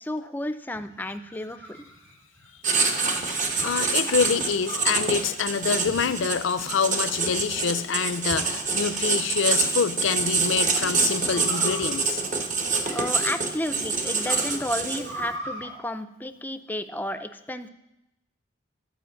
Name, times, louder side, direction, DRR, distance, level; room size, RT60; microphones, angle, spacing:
voice 1, 0.0-1.9 12.9-17.7, left 1 dB, 10° left, 11 dB, 0.4 m, -32 dB
sound 1, 0.7-2.6 3.6-3.9 4.6-5.1 5.8-6.4 7.0-7.6 8.3-9.1 10.2-10.5 11.3-13.3 13.8-15.7, right 1 dB, 60° right, 3.6 m, -40 dB
Writing, 2.6-15.2, right 4 dB, 40° right, 0.9 m, -26 dB
voice 2, 3.6-12.2, left 6 dB, 70° left, 13 dB, 0.5 m, -26 dB
11.0 x 5.1 x 7.0 m, 0.90 s
head